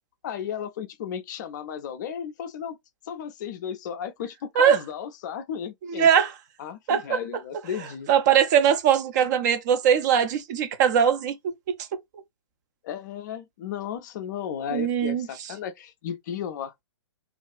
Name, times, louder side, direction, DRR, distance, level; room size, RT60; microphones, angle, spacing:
voice 1, 0.2-2.8 3.1-6.1 6.6-8.1 12.8-16.8, left 8 dB, 40° left, 0.4 m, -34 dB
voice 2, 5.9-6.3 6.9-7.2 8.1-11.3 11.7-11.8 14.7-15.3, right 8 dB, 35° right, 0.5 m, -21 dB
2.4 x 2.3 x 2.2 m
figure-of-eight pair, 120°, 16 cm